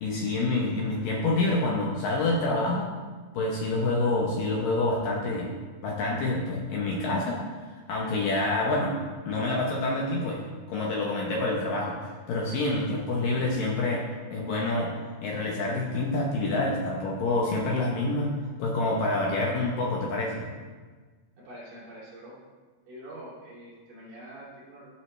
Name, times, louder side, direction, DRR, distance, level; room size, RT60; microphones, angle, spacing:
voice 1, 0.0-2.9 3.3-5.5 5.8-7.4 7.7-8.9 9.3-14.0 14.3-14.9 15.2-20.5, left 2 dB, 70° left, -2 dB, 2.3 m, -27 dB
voice 2, 21.4-22.4 22.8-24.9, right 1 dB, 55° right, -7 dB, 4.2 m, -45 dB
14.0 x 6.4 x 3.3 m, 1.4 s
omnidirectional pair, 4.8 m